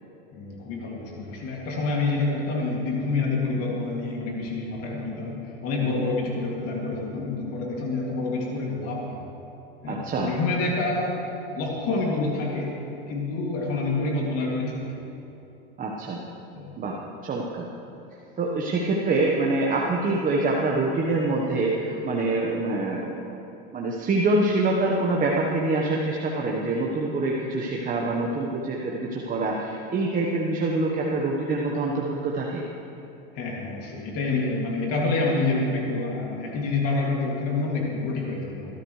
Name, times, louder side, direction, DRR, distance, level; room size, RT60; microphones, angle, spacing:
voice 1, 0.3-9.3 9.8-11.2 11.5-12.8 13.1-14.8 16.5-16.7 33.3-38.8, left 3 dB, 50° left, -2 dB, 2.7 m, -27 dB
voice 2, 9.9-10.3 15.8-16.2 16.8-17.0 17.2-17.6 18.4-23.4 23.7-32.6, right 2 dB, 25° right, -2 dB, 1.3 m, -25 dB
19.5 x 12.5 x 3.3 m, 2.9 s
supercardioid pair, 115°, 30 cm